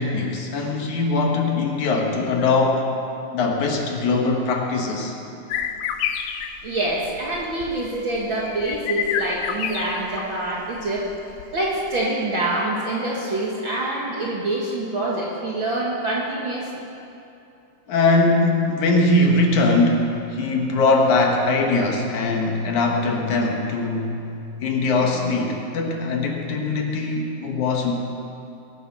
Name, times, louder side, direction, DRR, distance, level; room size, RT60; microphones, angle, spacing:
voice 1, 0.0-2.9 3.3-5.1 17.9-24.2 24.6-27.9, left 3 dB, 65° left, 1 dB, 2.6 m, -21 dB
sound 1, 5.5-10.4 10.6-11.7, left 8 dB, 90° left, 2.5 m, -29 dB
voice 2, 6.6-11.1 11.5-16.7, right 2 dB, 50° right, -4 dB, 1.6 m, -26 dB
21.0 x 9.1 x 6.0 m, 2.7 s
omnidirectional pair, 3.9 m